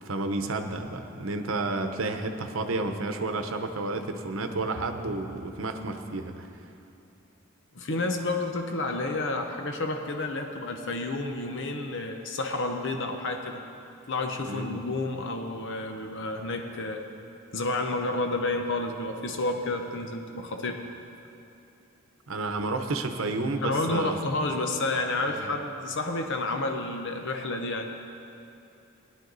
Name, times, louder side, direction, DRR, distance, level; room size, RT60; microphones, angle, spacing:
voice 1, 0.0-6.5 14.5-14.8 22.3-24.2 25.3-25.5, right 2 dB, 80° right, 6 dB, 0.9 m, -31 dB
voice 2, 7.7-13.6 14.1-17.1 17.5-20.8 23.6-27.9, left 2 dB, 65° left, 4 dB, 0.9 m, -30 dB
17.0 x 10.5 x 4.0 m, 2.7 s
head